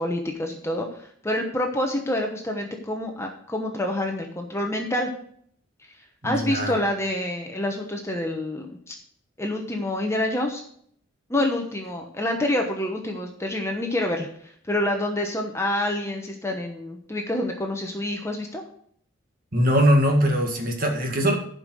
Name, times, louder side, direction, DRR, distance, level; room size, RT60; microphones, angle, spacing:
voice 1, 0.0-5.1 6.2-9.0 9.4-10.6 11.3-18.6, left 1 dB, 15° left, 2 dB, 1.0 m, -27 dB
voice 2, 6.2-6.8 19.5-21.3, equal, 45° right, 2 dB, 1.9 m, -21 dB
11.5 x 5.4 x 6.3 m, 0.62 s
head